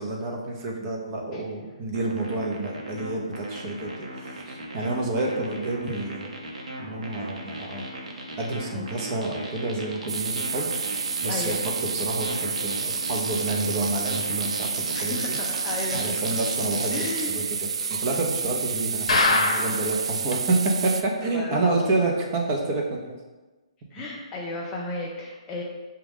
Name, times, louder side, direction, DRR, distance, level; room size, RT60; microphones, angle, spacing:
voice 1, 0.0-6.3 6.8-7.9 8.4-11.5 12.0-14.7 15.0-15.4 15.9-23.2, right 2 dB, 25° right, -1 dB, 0.7 m, -29 dB
sound 1, 1.9-17.2, right 1 dB, 85° right, 0.9 m, -37 dB
sound 2, 10.1-21.0, right 6 dB, 60° right, 0.3 m, -30 dB
voice 2, 11.3-11.6 14.9-16.2 16.9-17.5 21.2-22.0 23.9-25.6, left 2 dB, 15° left, -2 dB, 0.4 m, -34 dB
sound 3, 19.1-19.9 20.3-20.4 20.7-20.8 21.2-21.3, left 3 dB, 75° left, 0.7 m, -22 dB
6.1 x 2.3 x 3.5 m, 1.2 s
hypercardioid pair, 160°, 3 cm